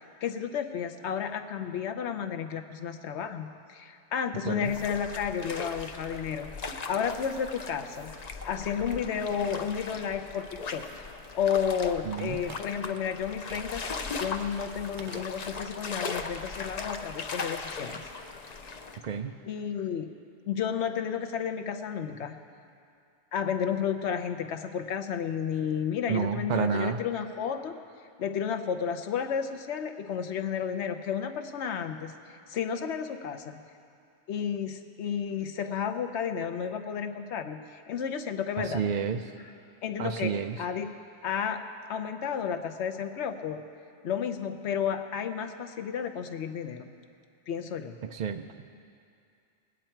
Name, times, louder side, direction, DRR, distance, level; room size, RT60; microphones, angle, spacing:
voice 1, 0.2-8.1 8.4-10.4 10.7-11.1 11.3-18.1 19.5-20.1 20.5-22.4 23.3-27.8 28.2-32.1 32.5-33.6 34.3-38.8 39.8-40.9 41.2-41.6 41.9-43.6 44.0-46.9 47.5-48.0, left 7 dB, 65° left, 7 dB, 1.0 m, -32 dB
sound 1, 4.6-19.0, left 4 dB, 45° left, 0.6 m, -39 dB
voice 2, 12.0-12.4 19.0-19.3 26.1-27.0 38.6-39.2 40.0-40.6 48.0-48.5, right 7 dB, 75° right, 6 dB, 0.4 m, -30 dB
Telephone, 12.2-13.0 13.4-13.9 15.0-15.8 16.1-16.2, right 5 dB, 50° right, 0.7 m, -48 dB
20.5 x 9.1 x 4.5 m, 2.5 s
omnidirectional pair, 1.3 m